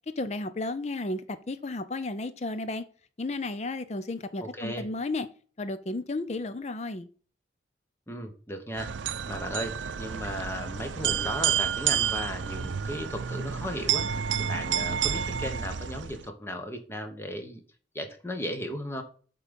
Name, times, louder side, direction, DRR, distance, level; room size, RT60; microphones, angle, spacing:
voice 1, 0.2-2.8 3.2-5.3 5.6-7.1, left 2 dB, 35° left, 0.5 m, -33 dB
voice 2, 4.4-4.9 8.1-9.0 9.3-17.6 17.9-19.0, equal, 15° left, 1.0 m, -36 dB
sound 1, 8.8-16.3, right 8 dB, 90° right, 0.5 m, -30 dB
8.3 x 3.8 x 5.2 m
head